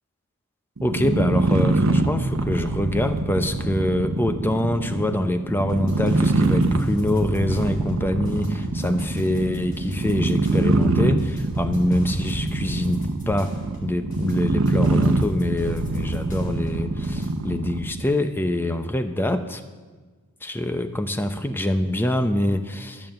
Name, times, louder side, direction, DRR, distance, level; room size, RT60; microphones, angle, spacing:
voice 1, 0.8-13.5 13.8-19.6 20.4-23.1, left 1 dB, 10° left, 9 dB, 0.6 m, -25 dB
sound 1, 0.8-18.0, right 2 dB, 60° right, 0.9 m, -24 dB
sound 2, 5.7-17.4, right 1 dB, 40° left, 3.5 m, -42 dB
12.5 x 7.2 x 7.7 m, 1.4 s
head